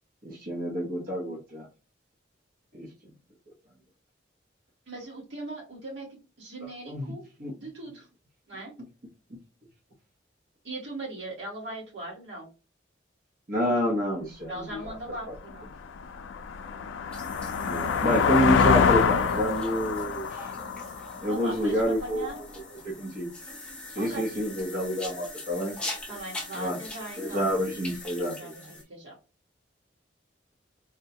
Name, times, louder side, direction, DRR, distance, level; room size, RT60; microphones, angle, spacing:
voice 1, 0.2-1.7 2.7-2.9 6.9-7.1 7.4-7.5 13.5-15.0 17.6-20.5 21.2-23.3 23.9-25.7 26.5-26.8 27.2-28.7, equal, 50° right, -4 dB, 0.8 m, -28 dB
voice 2, 4.9-7.2 7.6-8.1 8.5-8.7 10.6-12.5 14.5-15.7 21.3-22.4 24.0-24.2 26.1-27.5 28.4-29.1, right 2 dB, 80° right, -3 dB, 1.7 m, -39 dB
sound 1, 14.9-15.0 15.5-22.1, left 5 dB, 85° left, 0.3 m, -26 dB
sound 2, 17.1-28.8, left 2 dB, 5° left, 0.7 m, -42 dB
3.6 x 2.2 x 2.7 m, 0.33 s
head